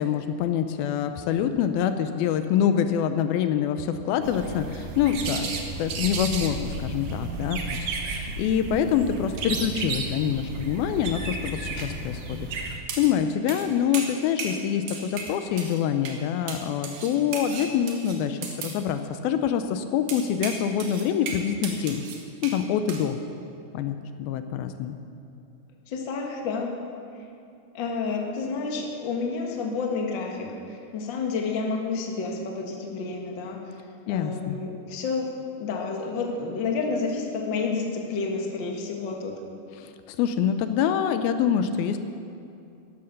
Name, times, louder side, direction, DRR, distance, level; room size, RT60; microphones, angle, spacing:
voice 1, 0.0-5.5 5.8-22.0 22.4-23.2 23.7-25.0 34.1-34.6 39.8-42.0, left 8 dB, 80° left, 9 dB, 2.5 m, -26 dB
sound 1, 4.2-12.8, right 3 dB, 60° right, 1.8 m, -33 dB
sound 2, 11.7-11.9 12.9-13.2 13.5-13.7 13.9-14.6 14.9-15.8 16.1-16.2 16.5-18.8 20.1-22.6 22.9-23.1, right 5 dB, 75° right, 3.3 m, -36 dB
voice 2, 25.9-26.7 27.7-33.6 34.1-35.3 35.6-39.4, left 4 dB, 45° left, 1 dB, 1.6 m, -30 dB
14.0 x 11.5 x 6.6 m, 2.6 s
omnidirectional pair, 4.3 m